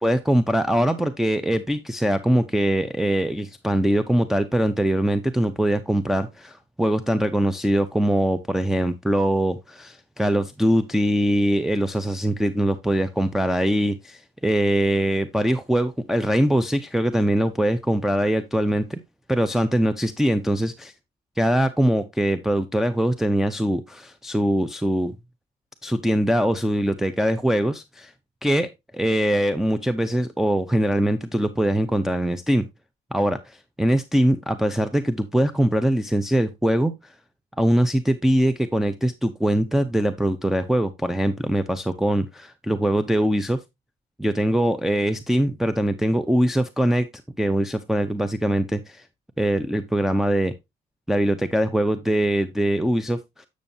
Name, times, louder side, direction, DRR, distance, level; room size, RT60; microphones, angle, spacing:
voice 1, 0.0-19.0 19.3-20.9 21.4-25.2 25.8-28.1 28.4-32.6 33.1-36.9 37.6-43.6 44.2-47.1 47.4-49.0 49.4-50.5 51.1-53.5, right 1 dB, ahead, 0.6 m, -22 dB
8.9 x 6.3 x 2.7 m
cardioid pair, 90°, 20 cm